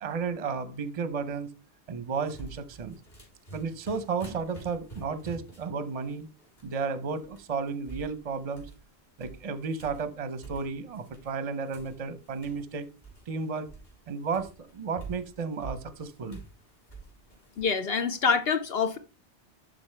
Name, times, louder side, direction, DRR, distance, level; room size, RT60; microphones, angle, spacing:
voice 1, 0.0-1.5 1.9-3.0 3.5-6.3 6.6-8.7 9.2-12.9 13.3-13.7 14.1-16.4, right 5 dB, 40° right, 12 dB, 0.7 m, -33 dB
sound 1, 2.1-6.8 7.1-8.9 9.2-11.4 11.7-17.6, right 4 dB, 40° left, 3.4 m, -47 dB
voice 2, 17.6-19.0, left 5 dB, 60° left, 8 dB, 1.0 m, -26 dB
11.5 x 3.9 x 3.3 m, 0.31 s
omnidirectional pair, 1.2 m